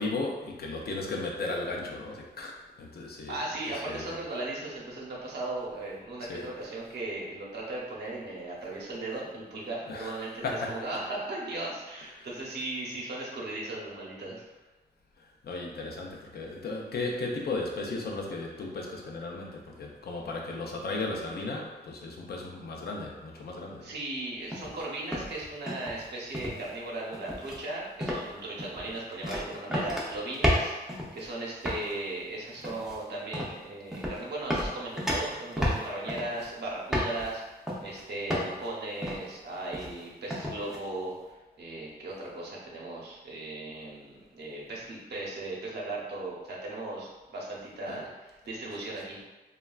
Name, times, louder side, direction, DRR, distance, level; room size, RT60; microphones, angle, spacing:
voice 1, 0.0-3.3 3.8-4.1 6.3-6.4 9.9-10.1 10.4-10.7 12.2-12.3 15.2-23.9 47.9-48.0, left 3 dB, 65° left, 0 dB, 0.5 m, -35 dB
voice 2, 3.3-14.4 23.8-49.2, right 2 dB, 75° right, -4 dB, 0.7 m, -37 dB
sound 1, 24.5-24.8 25.1-26.1 26.3-26.7 27.1-27.6 28.0-28.3 28.6-31.3 31.6-31.9 32.6-33.0 33.3-33.6 33.9-34.2 34.5-36.5 36.9-37.3 37.7-38.0 38.3-38.7 39.0-39.3 39.7-40.0 40.3-40.8, equal, ahead, 0.5 m, -31 dB
3.1 x 2.3 x 2.2 m, 1.1 s
wide cardioid pair, 130°, 17 cm